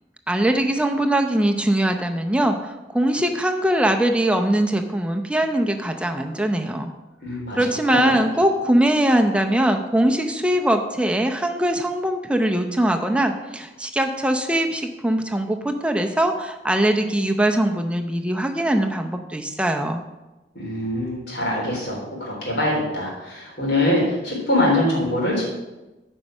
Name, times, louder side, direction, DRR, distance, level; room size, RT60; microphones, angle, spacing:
voice 1, 0.3-6.9 7.6-20.0, right 1 dB, 5° right, 4 dB, 0.6 m, -21 dB
voice 2, 7.2-7.6 7.9-8.1 20.5-25.4, left 1 dB, 70° left, -3 dB, 3.7 m, -23 dB
9.3 x 5.4 x 6.3 m, 1.1 s
head